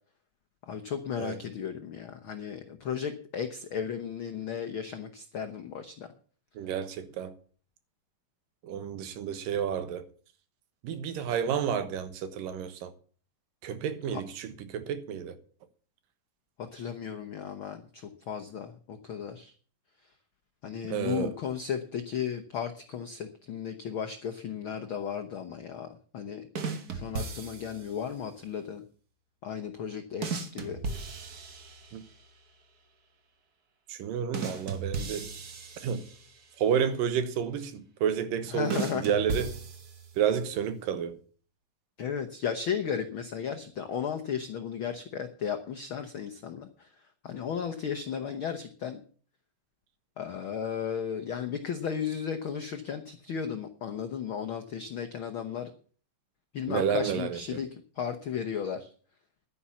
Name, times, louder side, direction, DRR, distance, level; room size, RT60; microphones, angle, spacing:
voice 1, 0.7-6.1 14.1-14.2 16.6-19.5 20.6-25.9 26.1-26.4 26.9-28.8 29.4-30.8 38.5-39.2 42.0-46.9 47.2-49.0 50.2-55.7 56.5-58.9, left 7 dB, 85° left, 1.1 m, -35 dB
voice 2, 6.6-7.3 8.6-10.0 10.8-12.9 13.6-15.4 20.9-21.3 31.9-32.0 33.9-35.3 35.8-36.0 36.6-39.5 40.2-41.2 56.7-57.6, right 8 dB, 85° right, 2.9 m, -30 dB
sound 1, 26.6-28.0 30.2-32.2 34.3-36.5 38.7-40.3, right 4 dB, 55° right, 1.0 m, -36 dB
11.0 x 9.9 x 7.2 m
omnidirectional pair, 3.8 m